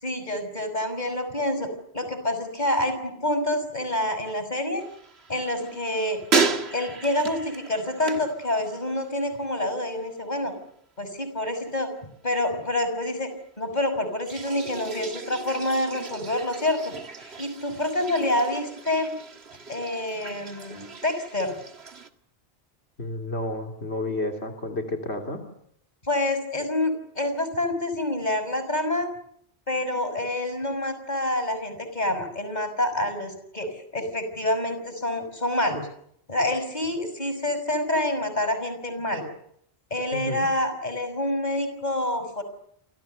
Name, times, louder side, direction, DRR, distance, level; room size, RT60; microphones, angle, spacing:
voice 1, 0.0-1.7 1.9-4.8 5.3-6.2 6.7-10.5 11.0-11.9 12.2-13.3 13.6-16.9 17.2-19.2 19.7-21.5 26.0-29.1 29.7-35.9 36.3-39.3 39.9-42.4, left 1 dB, 40° left, 9 dB, 6.2 m, -27 dB
sound 1, 4.8-9.2 9.5-10.0 14.2-22.1, right 4 dB, 80° right, 2.1 m, -33 dB
voice 2, 23.0-25.4 40.1-40.5, left 1 dB, 85° left, 3 dB, 3.2 m, -31 dB
28.5 x 26.0 x 6.8 m, 0.72 s
omnidirectional pair, 1.1 m